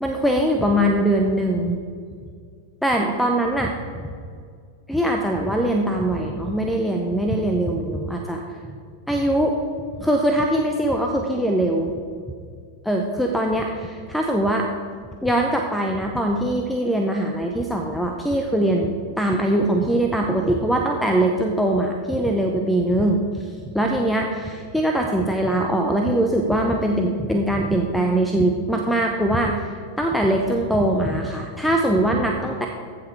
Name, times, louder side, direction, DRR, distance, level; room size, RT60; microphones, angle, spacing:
voice 1, 0.0-1.8 2.8-4.0 4.9-8.8 9.1-9.6 10.0-11.9 12.8-14.7 15.2-18.9 19.2-23.5 23.7-29.7 30.0-32.7, right 1 dB, ahead, 2 dB, 0.8 m, -22 dB
15.0 x 5.9 x 4.6 m, 2.1 s
figure-of-eight pair, 90°, 0 cm